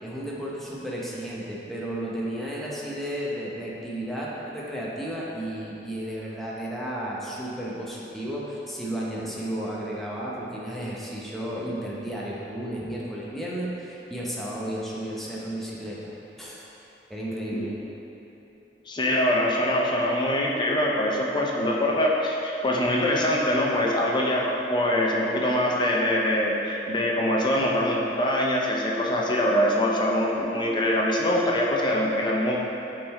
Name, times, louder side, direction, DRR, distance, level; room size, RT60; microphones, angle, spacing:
voice 1, 0.0-16.7 17.1-17.8, right 1 dB, ahead, -6 dB, 0.9 m, -33 dB
voice 2, 18.9-32.6, left 1 dB, 25° left, -3 dB, 0.7 m, -24 dB
7.4 x 3.9 x 4.3 m, 3.0 s
head